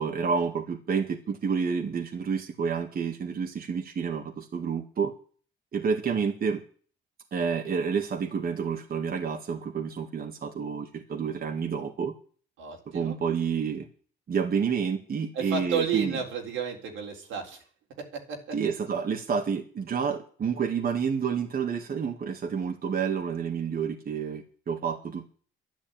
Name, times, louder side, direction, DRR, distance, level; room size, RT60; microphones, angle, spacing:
voice 1, 0.0-5.1 5.7-6.6 7.3-12.1 12.9-13.9 14.3-16.2 18.5-25.3, right 6 dB, 50° right, 3 dB, 1.9 m, -29 dB
voice 2, 12.6-13.2 15.3-17.6 18.0-18.6, right 6 dB, 90° right, 0 dB, 3.8 m, -32 dB
11.5 x 11.0 x 8.8 m, 0.43 s
cardioid pair, 90°, 20 cm